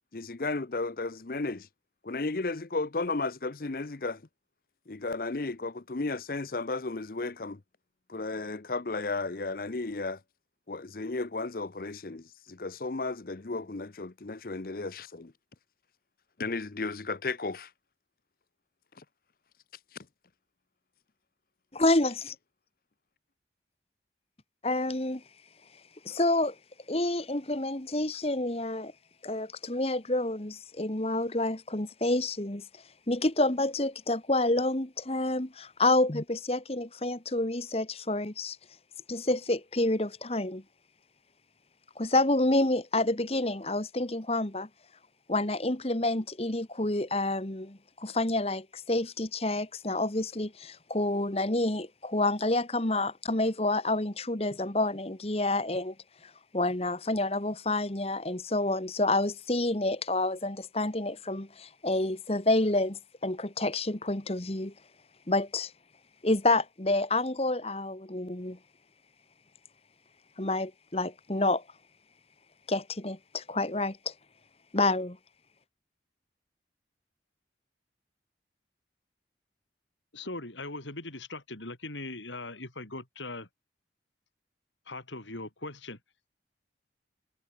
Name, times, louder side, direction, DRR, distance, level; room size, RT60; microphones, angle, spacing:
voice 1, 0.1-1.7 2.0-4.2 4.9-7.6 8.1-10.2 10.7-15.3 16.4-17.7 19.0-19.1, left 3 dB, 50° left, 0.7 m, -34 dB
voice 2, 21.7-22.3 24.6-25.2 26.0-26.5 26.9-28.9 29.2-32.6 33.1-38.6 39.1-40.6 42.0-44.7 45.3-55.9 56.5-64.7 65.3-65.7 66.2-68.6 70.4-71.6 72.7-74.1 74.7-75.2, left 2 dB, 35° left, 1.5 m, -28 dB
voice 3, 80.1-83.5 84.9-86.0, left 2 dB, 85° left, 5.7 m, -40 dB
head